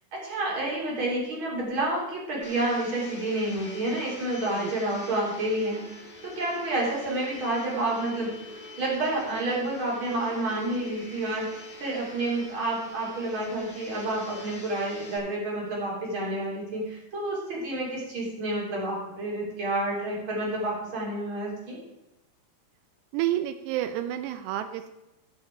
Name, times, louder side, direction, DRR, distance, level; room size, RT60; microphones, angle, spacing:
voice 1, 0.1-5.8 6.2-21.8, right 2 dB, 30° right, -4 dB, 3.4 m, -29 dB
Domestic sounds home sounds, 2.4-15.2, left 2 dB, 65° left, 0.5 m, -45 dB
voice 2, 23.1-24.9, right 12 dB, 85° right, 9 dB, 2.7 m, -29 dB
14.5 x 5.7 x 4.7 m, 0.98 s
omnidirectional pair, 4.8 m